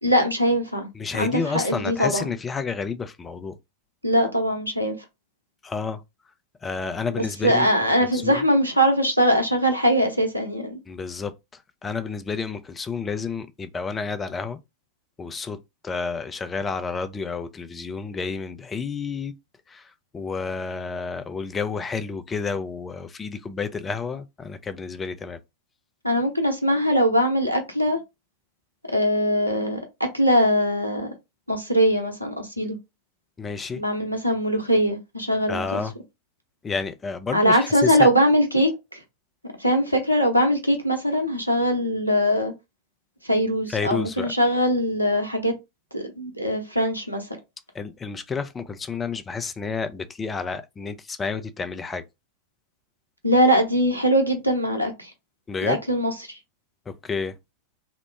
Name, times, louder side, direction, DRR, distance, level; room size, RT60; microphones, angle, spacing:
voice 1, 0.0-0.9 1.2-2.3 4.0-5.0 7.1-10.8 26.0-28.0 28.9-31.1 31.5-32.8 33.8-35.8 37.3-39.0 39.6-42.5 43.2-45.5 45.9-47.2 53.2-55.1 55.6-56.4, equal, 90° left, 0.7 m, -22 dB
voice 2, 0.9-3.6 5.6-6.0 6.6-7.7 8.1-8.4 10.9-11.3 11.8-14.6 15.2-15.6 15.8-19.3 19.7-25.4 33.4-33.8 35.5-35.9 36.6-38.1 43.7-44.3 47.7-52.0 55.5-55.8 56.9-57.3, left 5 dB, 15° left, 0.4 m, -30 dB
3.0 x 2.0 x 3.2 m
figure-of-eight pair, 90°, 0 cm